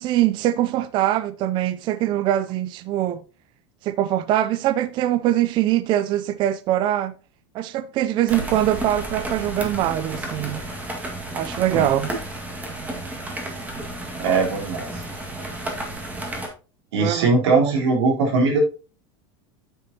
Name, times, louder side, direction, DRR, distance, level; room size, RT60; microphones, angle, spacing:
voice 1, 0.0-3.2 3.8-7.1 7.5-10.6 11.3-12.1 17.0-17.8, right 12 dB, 35° right, 0.4 m, -23 dB
sound 1, 8.3-16.5, right 1 dB, 10° right, 1.8 m, -32 dB
voice 2, 14.2-14.9 16.9-18.6, right 4 dB, 90° right, 3.7 m, -20 dB
9.4 x 6.9 x 2.8 m
supercardioid pair, 145°, 14 cm